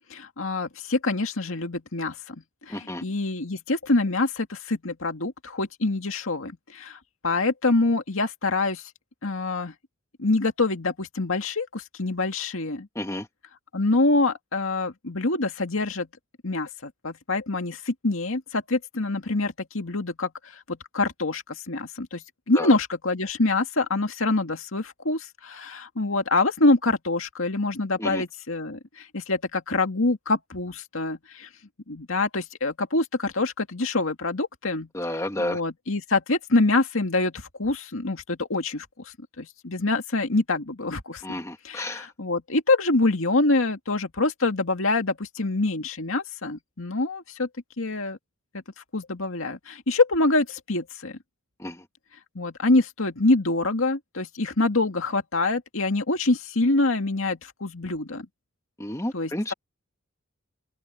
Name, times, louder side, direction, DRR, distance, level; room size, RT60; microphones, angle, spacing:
voice 1, 0.1-2.4 2.7-8.8 9.2-9.7 10.2-12.9 13.7-16.1 16.4-31.5 31.9-34.9 35.4-41.2 41.6-47.5 47.8-48.2 48.9-51.2 52.4-58.3 59.1-59.5, left 2 dB, 75° left, 2.2 m, -25 dB
voice 2, 2.7-3.0 13.0-13.3 22.5-22.7 28.0-28.2 34.9-35.6 41.2-42.1 51.6-51.8 58.8-59.5, left 1 dB, 15° left, 2.0 m, -31 dB
open air
head